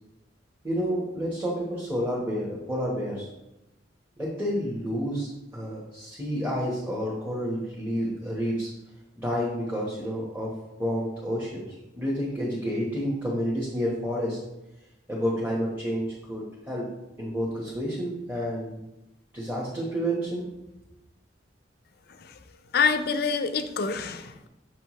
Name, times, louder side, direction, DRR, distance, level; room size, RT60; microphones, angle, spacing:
voice 1, 0.6-3.3 4.2-8.7 9.2-10.5 10.8-14.4 15.1-16.9 17.2-18.8 19.3-20.4, equal, 10° right, -6 dB, 1.2 m, -30 dB
voice 2, 22.7-24.5, left 5 dB, 60° left, 10 dB, 0.5 m, -26 dB
6.5 x 5.6 x 3.1 m, 0.92 s
head